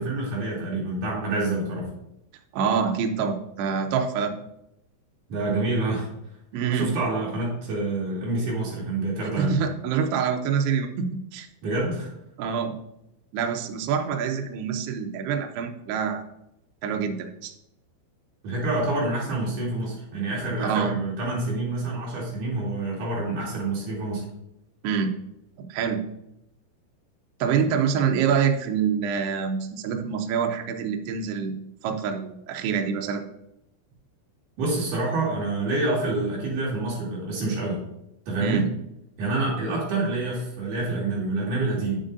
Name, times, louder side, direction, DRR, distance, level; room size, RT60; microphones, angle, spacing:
voice 1, 0.0-1.9 5.3-6.1 6.7-9.6 11.6-12.1 18.4-24.2 34.6-37.8 38.3-38.6 39.2-42.0, right 2 dB, 55° right, -4 dB, 2.9 m, -27 dB
voice 2, 2.5-4.3 6.5-6.9 9.4-11.5 12.4-12.8 13.3-16.2 16.8-17.5 20.6-20.9 24.8-25.1 25.7-26.1 27.4-31.6 31.8-33.2 38.4-38.7, right 7 dB, 80° right, 4 dB, 2.3 m, -26 dB
8.9 x 7.4 x 2.6 m, 0.83 s
omnidirectional pair, 5.6 m